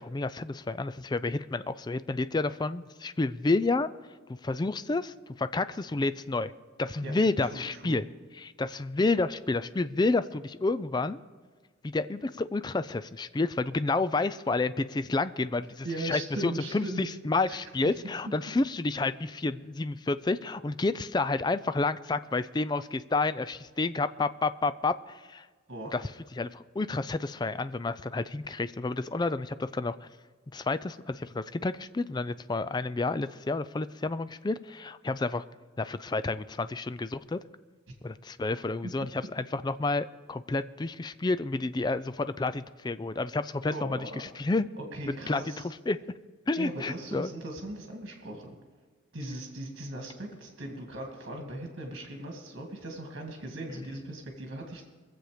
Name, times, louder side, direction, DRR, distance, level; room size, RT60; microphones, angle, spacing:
voice 1, 0.0-3.9 4.4-6.5 6.8-8.1 8.3-11.2 11.8-25.5 25.9-30.1 30.5-35.4 35.8-37.4 38.0-44.6 45.1-46.0 46.5-47.3, left 3 dB, 20° left, 14 dB, 0.3 m, -30 dB
voice 2, 7.0-8.0 15.8-17.1 17.5-17.6 17.8-17.9 18.3-18.4 25.7-26.0 43.7-44.2 44.9-45.7 46.6-48.6 49.1-54.8, right 1 dB, 55° right, 1 dB, 2.0 m, -39 dB
22.5 x 7.8 x 5.0 m, 1.4 s
head